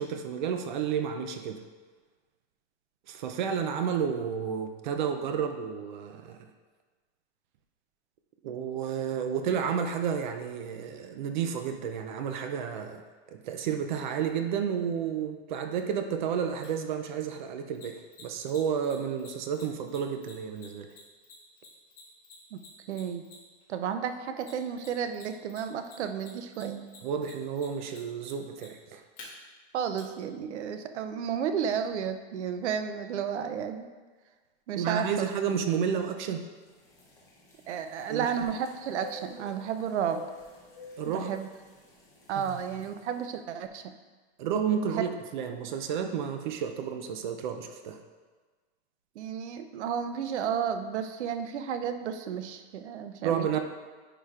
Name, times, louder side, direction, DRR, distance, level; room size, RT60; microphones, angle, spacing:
voice 1, 0.0-1.6 3.1-6.4 8.4-13.0 13.3-20.9 27.0-29.0 34.8-36.5 38.1-38.3 41.0-41.3 42.4-42.6 44.4-48.0 53.2-53.6, right 7 dB, 45° right, 6 dB, 0.5 m, -31 dB
Mechanisms, 16.6-16.7 17.7-23.6 24.4-25.2 25.5-29.2 30.0-30.1, left 6 dB, 25° left, 1.7 m, -51 dB
voice 2, 22.9-23.2 23.7-26.9 29.7-33.9 34.7-35.3 37.7-40.2 41.1-41.5 42.3-43.9 44.9-45.0 49.2-53.6, right 8 dB, 80° right, 8 dB, 0.7 m, -32 dB
sound 1, 36.6-43.2, left 2 dB, 10° left, 0.7 m, -49 dB
10.0 x 5.0 x 2.4 m, 1.4 s
supercardioid pair, 165°, 34 cm